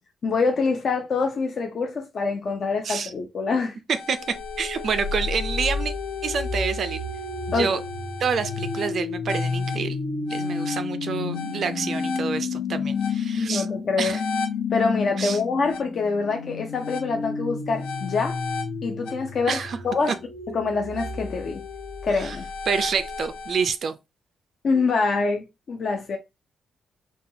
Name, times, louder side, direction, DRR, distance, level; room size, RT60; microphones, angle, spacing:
voice 1, 0.2-3.8 7.5-7.7 13.4-14.2 14.7-18.4 18.8-19.6 19.9-20.1 20.5-21.6 22.0-22.5 24.6-26.2, left 4 dB, 45° left, 0.4 m, -25 dB
sound 1, 3.9-23.6, left 4 dB, 85° left, 0.8 m, -31 dB
voice 2, 4.6-5.9 6.2-7.0 7.5-7.8 8.2-10.0 10.3-13.7 14.0-14.2 15.2-15.4 19.5-19.8 20.1-20.2 22.2-22.4 22.7-24.0, right 6 dB, 50° right, 0.3 m, -27 dB
4.1 x 2.3 x 2.6 m
wide cardioid pair, 165°, 0 cm